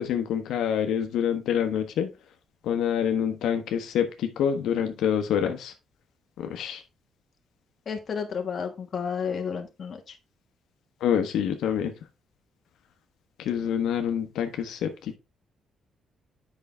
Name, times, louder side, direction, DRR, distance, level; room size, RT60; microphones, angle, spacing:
voice 1, 0.0-2.1 2.6-5.7 6.4-6.8 11.0-11.9 13.4-15.2, left 8 dB, 85° left, 6 dB, 1.1 m, -26 dB
voice 2, 7.9-10.2, left 6 dB, 45° left, 4 dB, 1.4 m, -32 dB
8.3 x 5.5 x 3.5 m, 0.26 s
cardioid pair, 120°, 0 cm